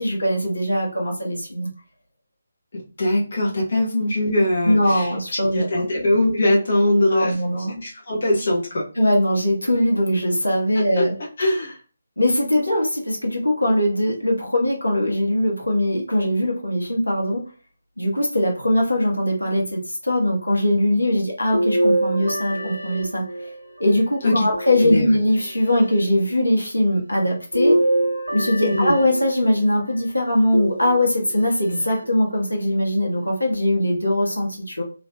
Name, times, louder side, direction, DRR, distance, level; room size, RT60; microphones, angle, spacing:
voice 1, 0.0-1.7 4.6-5.9 7.1-7.7 9.0-11.1 12.2-17.4 18.0-23.5 23.8-27.8 28.3-34.8, left 1 dB, 75° left, 0 dB, 1.2 m, -21 dB
voice 2, 2.7-7.3 7.7-8.8 11.0-11.1 11.4-11.8 24.2-24.5 24.8-25.2 28.6-29.0, left 1 dB, 45° left, -4 dB, 1.0 m, -21 dB
sound 1, 21.5-23.8 24.5-25.5 27.5-29.6 30.5-31.4 32.0-32.1 33.5-33.6, right 1 dB, 85° right, 0.7 m, -24 dB
3.1 x 2.8 x 2.2 m, 0.36 s
figure-of-eight pair, 150°, 0 cm